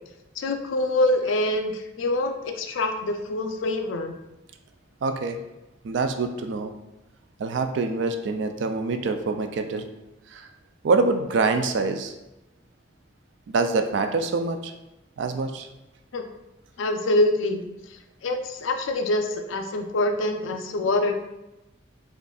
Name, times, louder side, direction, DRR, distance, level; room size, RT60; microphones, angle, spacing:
voice 1, 0.4-4.1 16.1-16.2 16.8-17.6 18.2-21.2, left 2 dB, 90° left, 5 dB, 0.4 m, -25 dB
voice 2, 5.0-5.4 5.8-6.7 7.4-9.9 10.3-10.5 10.8-12.1 13.5-14.7 15.2-15.7, right 3 dB, 70° right, 7 dB, 0.3 m, -25 dB
5.1 x 2.5 x 2.3 m, 0.98 s
head